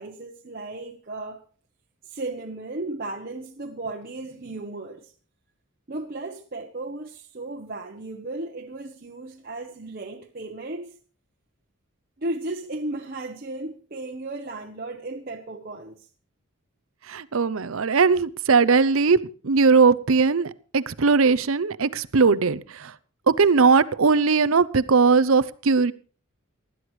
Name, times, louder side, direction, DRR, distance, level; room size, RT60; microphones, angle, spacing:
voice 1, 0.0-1.4 2.0-5.1 5.9-11.0 12.2-16.1, right 2 dB, 40° right, 1.1 m, -35 dB
voice 2, 17.1-19.2 19.4-22.9 23.4-25.9, right 4 dB, 65° right, 0.7 m, -19 dB
20.0 x 12.5 x 3.2 m
head